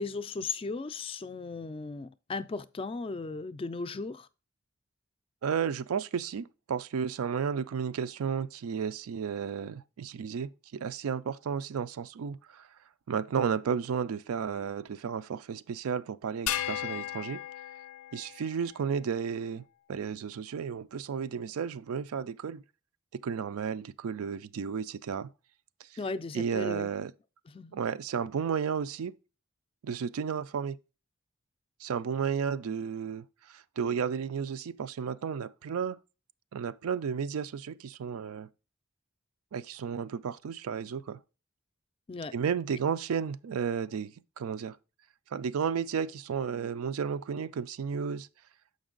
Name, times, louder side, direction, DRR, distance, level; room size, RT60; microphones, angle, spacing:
voice 1, 0.0-4.3 26.0-26.9 27.5-27.8 42.1-42.3, left 3 dB, 25° left, 0.3 m, -36 dB
voice 2, 5.4-12.6 13.1-17.4 18.1-19.6 19.9-22.6 23.2-25.3 26.3-27.1 27.7-29.1 29.8-30.8 31.8-33.2 33.5-36.0 36.5-38.5 39.5-41.2 42.3-44.8 45.3-48.3, right 7 dB, 90° right, 0.4 m, -33 dB
sound 1, 16.5-19.0, left 12 dB, 90° left, 0.5 m, -36 dB
7.0 x 5.2 x 3.8 m
head